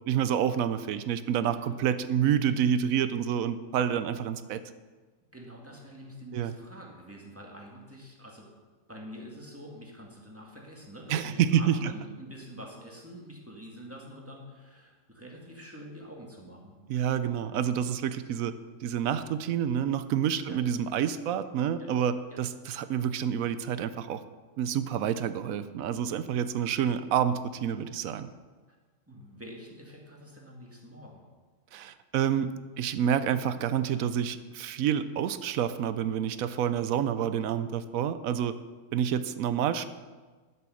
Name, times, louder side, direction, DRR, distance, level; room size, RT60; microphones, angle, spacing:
voice 1, 0.1-4.6 6.3-6.5 11.1-11.9 16.9-18.5 18.8-24.2 24.6-28.3 31.7-38.5 38.9-39.9, right 9 dB, 90° right, 13 dB, 1.1 m, -28 dB
voice 2, 5.3-8.5 8.9-16.7 20.5-20.6 21.8-21.9 22.3-22.4 29.1-31.2, equal, 10° right, -1 dB, 2.0 m, -46 dB
11.0 x 7.7 x 6.4 m, 1.3 s
omnidirectional pair, 1.4 m